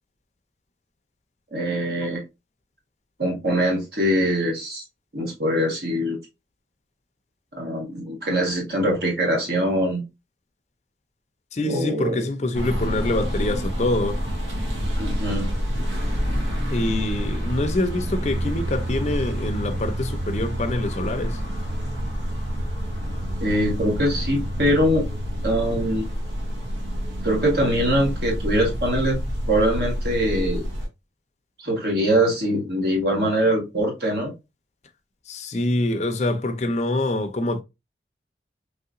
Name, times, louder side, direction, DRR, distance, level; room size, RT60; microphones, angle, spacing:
voice 1, 1.5-2.2 3.2-4.8 5.1-6.2 7.5-10.0 11.6-12.3 15.0-15.5 23.4-25.0 25.4-26.1 27.2-29.2 29.5-30.6 31.6-34.3, equal, 65° right, 1.4 m, -23 dB
voice 2, 11.5-14.2 16.7-21.4 35.3-37.6, left 2 dB, 40° left, 0.4 m, -25 dB
sound 1, 12.5-30.9, equal, 90° right, 1.0 m, -28 dB
3.2 x 2.8 x 2.5 m
head